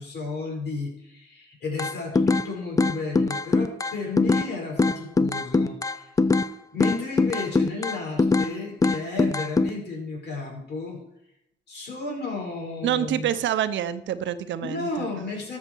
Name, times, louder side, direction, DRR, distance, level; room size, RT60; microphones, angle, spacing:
voice 1, 0.0-6.1 6.7-11.0 11.7-13.3 14.6-15.6, left 4 dB, 60° left, -1 dB, 5.1 m, -33 dB
sound 1, 1.8-2.5 2.8-4.5 4.8-6.5 6.8-8.5 8.8-9.7, left 3 dB, 15° left, 0.5 m, -22 dB
voice 2, 12.8-15.1, right 10 dB, 70° right, 13 dB, 0.8 m, -27 dB
13.5 x 6.6 x 4.6 m, 0.81 s
cardioid pair, 90°, 20 cm